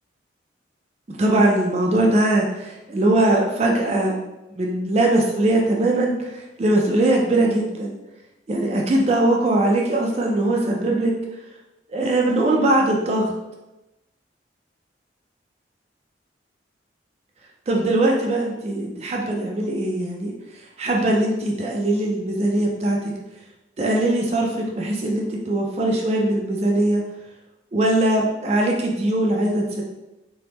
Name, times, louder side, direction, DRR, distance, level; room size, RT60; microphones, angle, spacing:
voice 1, 1.1-4.2 4.6-8.0 8.5-11.1 11.9-13.3 17.7-20.3 20.8-23.1 23.8-27.0 27.7-29.8, right 1 dB, 35° right, 0 dB, 0.3 m, -21 dB
3.3 x 2.1 x 2.8 m, 0.98 s
head